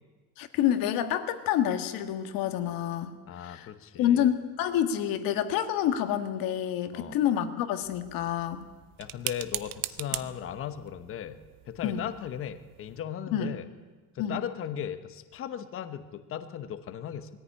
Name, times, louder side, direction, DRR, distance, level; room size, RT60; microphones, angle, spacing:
voice 1, 0.4-3.2 3.4-3.7 4.0-8.6 11.8-12.1 13.3-13.5 14.2-14.4, left 10 dB, 65° left, 9 dB, 1.8 m, -28 dB
voice 2, 3.3-4.3 6.9-7.2 9.0-11.4 11.6-13.7 14.1-17.3, left 9 dB, 35° left, 10 dB, 1.0 m, -37 dB
sound 1, 7.8-13.0, right 16 dB, 65° right, 0.9 m, -40 dB
20.5 x 14.5 x 10.0 m, 1.4 s
cardioid pair, 165°, 37 cm